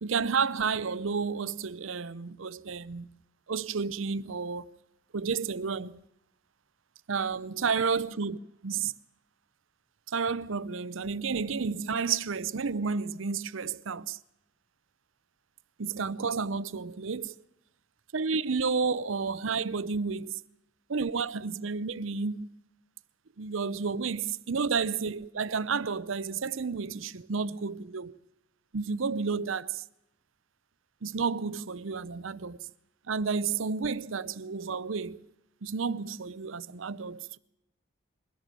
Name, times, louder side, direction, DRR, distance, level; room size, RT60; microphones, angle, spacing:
voice 1, 0.0-3.1 3.5-4.7 5.1-6.0 7.1-8.9 10.1-14.2 15.8-17.3 18.1-20.4 20.9-22.5 23.4-28.2 28.7-29.8 31.0-32.7 33.1-35.2 35.6-37.4, right 5 dB, 75° right, 0.7 m, -31 dB
22.0 x 16.0 x 7.5 m
head